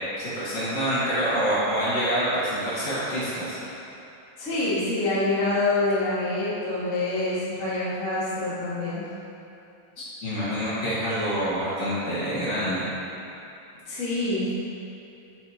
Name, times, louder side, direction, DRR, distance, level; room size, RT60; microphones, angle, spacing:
voice 1, 0.2-3.6 10.0-12.8, equal, 40° left, -10 dB, 2.6 m, -26 dB
voice 2, 4.4-9.0 13.8-14.6, left 2 dB, 80° left, -11 dB, 0.6 m, -26 dB
9.4 x 8.9 x 3.1 m, 2.8 s
omnidirectional pair, 5.4 m